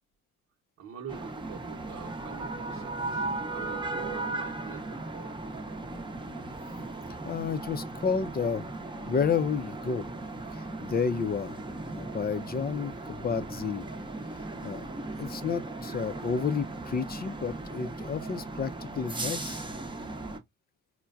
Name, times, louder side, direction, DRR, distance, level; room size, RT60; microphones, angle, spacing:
voice 1, 0.8-5.4 15.8-16.2, right 7 dB, 60° right, 0.9 m, -45 dB
sound 1, 1.1-20.4, right 2 dB, 15° right, 0.8 m, -37 dB
voice 2, 7.2-8.6 9.0-10.1 10.5-11.6 11.9-13.9 14.6-14.8 15.2-19.6, left 6 dB, 30° left, 0.5 m, -31 dB
4.5 x 2.2 x 2.4 m
cardioid pair, 90°, 30 cm